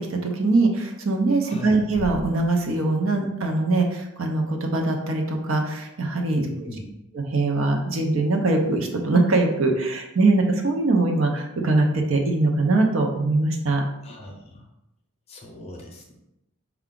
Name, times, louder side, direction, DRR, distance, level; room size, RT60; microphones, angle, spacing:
voice 1, 0.0-6.4 7.1-13.8, right 2 dB, 65° right, 2 dB, 0.7 m, -22 dB
voice 2, 1.4-1.8 6.3-6.8 14.0-14.7 15.3-16.2, left 1 dB, 30° left, 0 dB, 0.7 m, -37 dB
sound 1, 1.9-3.9, equal, 25° right, 0.5 m, -40 dB
4.6 x 2.3 x 3.7 m, 0.86 s
head